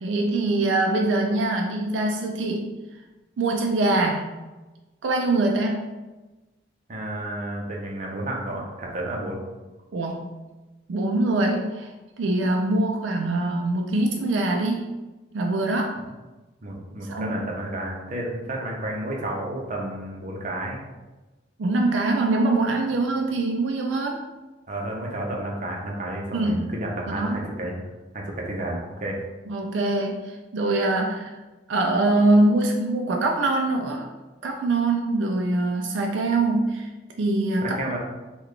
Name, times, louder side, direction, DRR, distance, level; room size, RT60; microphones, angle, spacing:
voice 1, 0.0-2.7 3.4-4.3 5.0-5.9 9.9-10.3 10.9-11.9 12.2-14.9 15.3-16.0 17.1-17.4 21.6-24.2 26.3-26.7 27.2-27.4 29.5-31.3 31.7-34.1 34.4-36.9 37.2-37.7, right 2 dB, 80° right, 2 dB, 0.4 m, -23 dB
voice 2, 6.9-9.4 16.6-20.8 24.7-27.9 28.1-29.2 37.6-38.0, right 1 dB, 40° right, -1 dB, 0.6 m, -31 dB
3.8 x 2.3 x 3.2 m, 1.1 s
head